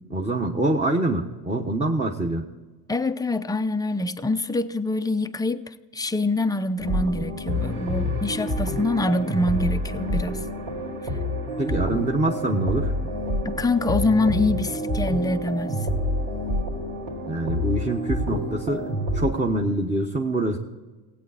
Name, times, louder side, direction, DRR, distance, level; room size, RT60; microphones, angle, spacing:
voice 1, 0.1-2.5 11.6-12.9 17.3-18.8 19.1-20.6, right 2 dB, 15° right, 1.2 m, -25 dB
voice 2, 2.9-10.4 13.4-15.8, left 2 dB, 10° left, 0.5 m, -25 dB
sound 1, 6.8-19.3, left 1 dB, 80° right, 3.5 m, -28 dB
17.0 x 8.5 x 4.1 m
cardioid pair, 100°, 45 cm